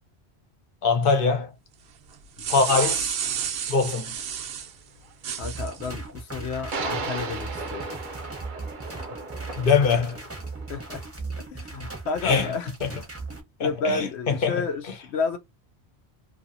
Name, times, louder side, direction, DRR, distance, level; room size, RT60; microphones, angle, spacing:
voice 1, 0.8-1.5 2.5-3.2 3.7-4.2 9.6-10.2 12.2-12.5 12.8-12.9 13.6-14.6, left 5 dB, 60° left, 1.0 m, -23 dB
sound 1, 2.1-4.7 5.2-5.9, right 8 dB, 75° right, 0.9 m, -30 dB
sound 2, 4.0-4.1 6.7-11.1, right 3 dB, 55° right, 0.7 m, -36 dB
voice 2, 5.4-7.9 8.9-9.0 10.7-11.0 11.5-12.7 13.6-15.4, left 4 dB, 85° left, 0.9 m, -31 dB
sound 3, 5.4-13.4, right 3 dB, 15° right, 0.7 m, -38 dB
2.7 x 2.6 x 2.6 m
omnidirectional pair, 1.1 m